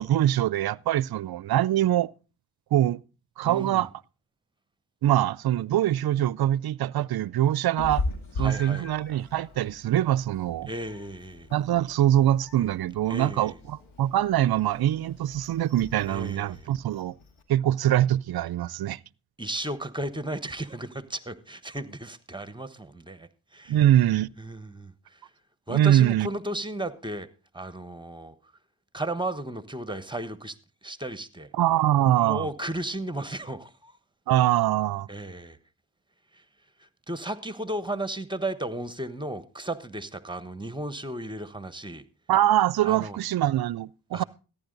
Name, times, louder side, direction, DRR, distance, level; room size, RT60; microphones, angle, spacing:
voice 1, 0.0-2.1 2.7-3.0 3.4-3.9 5.0-8.0 8.4-10.7 11.5-17.1 17.5-19.0 23.7-24.3 25.7-26.3 31.6-32.5 34.3-35.1 42.3-44.2, right 12 dB, 50° right, 0.5 m, -23 dB
voice 2, 3.4-3.9 8.4-8.9 10.7-11.5 13.1-13.6 16.1-16.7 19.4-23.8 24.4-25.3 25.7-27.3 27.5-28.3 28.9-30.6 30.8-31.5 32.1-34.0 35.1-35.6 36.3-36.4 36.8-42.0 42.8-43.2 44.1-44.2, right 1 dB, 10° right, 1.2 m, -34 dB
Meow, 7.8-17.4, left 2 dB, 80° left, 2.2 m, -39 dB
14.0 x 10.5 x 3.9 m
supercardioid pair, 40°, 47 cm